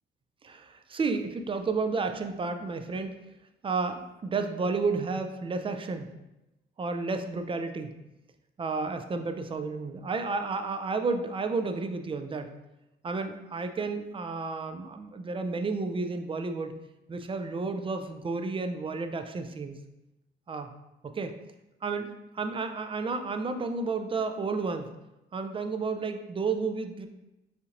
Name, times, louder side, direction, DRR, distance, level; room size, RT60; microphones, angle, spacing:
voice 1, 0.4-3.2 3.6-6.1 6.8-7.9 8.6-12.5 13.0-16.8 17.1-19.8 20.5-20.7 21.0-21.3 21.8-24.9 25.3-27.1, right 4 dB, 25° right, 7 dB, 0.3 m, -31 dB
4.3 x 2.8 x 2.5 m, 0.94 s
cardioid pair, 90°, 20 cm